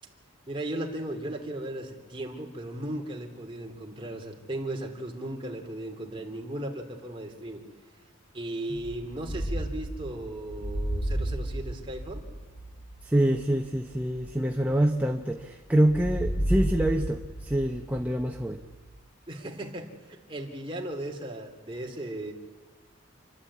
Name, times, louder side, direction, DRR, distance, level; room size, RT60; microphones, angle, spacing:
voice 1, 0.5-7.6 8.3-12.2 19.3-22.3, right 1 dB, 25° right, 1 dB, 2.8 m, -36 dB
sound 1, 8.8-15.4 15.9-19.1, right 1 dB, 85° left, 3.1 m, -33 dB
voice 2, 13.0-18.6, right 1 dB, 5° right, 2 dB, 0.8 m, -26 dB
29.0 x 12.0 x 8.5 m, 1.4 s
head